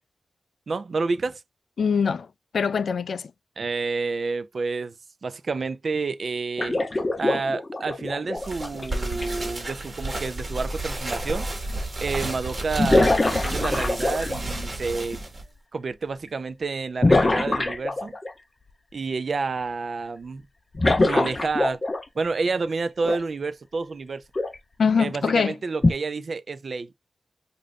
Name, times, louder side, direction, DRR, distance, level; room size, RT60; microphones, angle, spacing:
voice 1, 0.7-1.4 3.6-4.9 5.2-6.8 7.2-11.5 12.0-15.2 15.7-18.2 18.9-20.5 21.0-21.8 22.2-24.2 25.0-26.9, right 4 dB, 50° right, 0.4 m, -29 dB
voice 2, 1.8-2.3 2.5-3.3 24.8-25.6, left 6 dB, 70° left, 0.3 m, -23 dB
sound 1, 6.6-9.3 11.2-11.3 12.8-14.5 17.0-18.3 20.7-22.3 23.0-23.2 24.4-24.6 25.8-25.9, left 2 dB, 25° left, 0.6 m, -23 dB
sound 2, 8.4-15.4, right 1 dB, 30° right, 1.4 m, -31 dB
5.0 x 2.6 x 2.3 m
wide cardioid pair, 120°, 0 cm